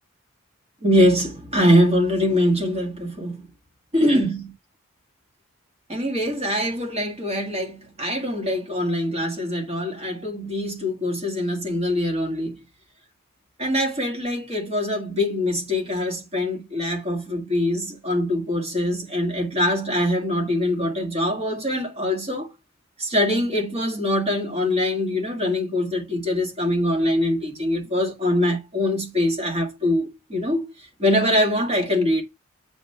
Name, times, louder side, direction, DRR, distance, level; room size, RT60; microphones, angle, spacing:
voice 1, 0.8-3.4 3.9-4.5 5.9-12.6 13.6-22.5 23.0-30.6 31.0-32.2, left 1 dB, 30° right, 1.6 m, -23 dB
7.1 x 3.1 x 5.4 m
head